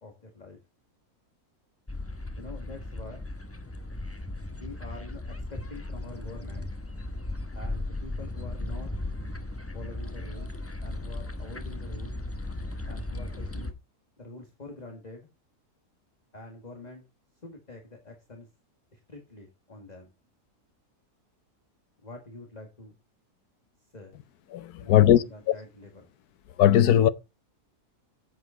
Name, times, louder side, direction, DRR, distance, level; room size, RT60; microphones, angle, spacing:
voice 1, 0.0-0.6 2.4-3.3 4.5-6.7 7.5-8.9 9.7-10.6 10.8-12.2 12.9-13.7 14.2-15.3 16.3-17.1 17.4-18.5 18.9-20.1 22.0-23.0 23.9-24.1 24.8-25.9, left 2 dB, 25° left, 1.9 m, -45 dB
sound 1, 1.9-13.7, left 2 dB, 10° left, 0.8 m, -36 dB
voice 2, 24.5-25.2 26.6-27.1, left 11 dB, 80° left, 1.3 m, -18 dB
9.4 x 8.4 x 4.0 m
omnidirectional pair, 1.6 m